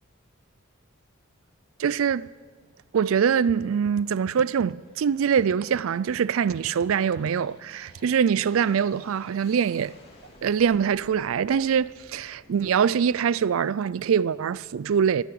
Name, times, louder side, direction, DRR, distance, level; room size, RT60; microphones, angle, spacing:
Aircraft, 1.6-14.4, left 1 dB, 30° left, 2.8 m, -55 dB
voice 1, 1.8-2.3 2.9-9.9 10.4-15.2, right 7 dB, 75° right, 0.4 m, -23 dB
13.5 x 10.5 x 8.5 m
head